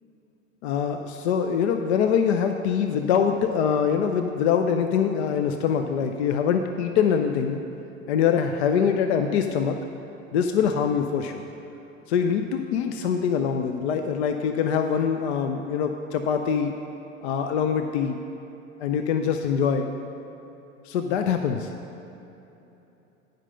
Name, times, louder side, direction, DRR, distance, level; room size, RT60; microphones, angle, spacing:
voice 1, 0.6-7.6 8.1-9.8 10.3-11.4 12.1-16.7 17.2-18.2 18.8-19.9 20.9-21.7, left 7 dB, 55° left, 6 dB, 0.5 m, -24 dB
9.7 x 5.2 x 5.5 m, 3.0 s
figure-of-eight pair, 80°, 41 cm